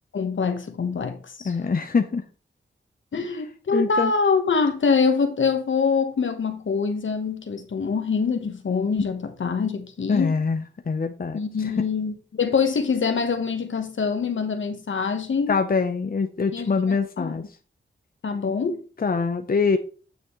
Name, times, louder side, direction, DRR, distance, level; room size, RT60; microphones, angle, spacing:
voice 1, 0.1-1.5 3.1-10.4 11.3-15.6 16.5-17.3 18.2-18.8, left 5 dB, 75° left, 1.3 m, -25 dB
voice 2, 1.4-2.2 3.7-4.1 10.1-11.7 15.5-17.4 19.0-19.8, left 5 dB, 50° left, 0.8 m, -24 dB
9.2 x 6.1 x 3.2 m
cardioid pair, 50°, 20 cm